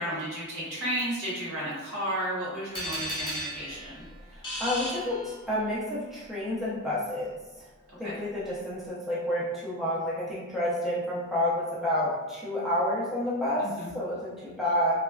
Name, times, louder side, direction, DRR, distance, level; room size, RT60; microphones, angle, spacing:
voice 1, 0.0-4.0 8.0-8.2 13.6-13.9, equal, 85° right, -7 dB, 1.3 m, -33 dB
sound 1, 2.7-5.8, equal, 25° left, 0.9 m, -35 dB
voice 2, 4.3-7.3 8.0-13.7 13.9-14.9, left 1 dB, ahead, -8 dB, 0.5 m, -29 dB
3.1 x 2.1 x 2.3 m, 1.1 s
head